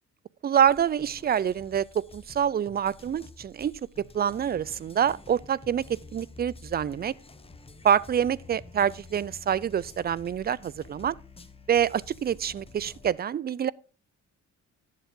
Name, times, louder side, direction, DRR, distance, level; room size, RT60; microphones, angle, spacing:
voice 1, 0.4-7.1 7.8-11.2 11.7-13.7, right 9 dB, 35° right, 0.4 m, -26 dB
sound 1, 0.7-13.1, left 3 dB, 20° left, 0.9 m, -49 dB
11.5 x 7.3 x 3.6 m
cardioid pair, 90°, 30 cm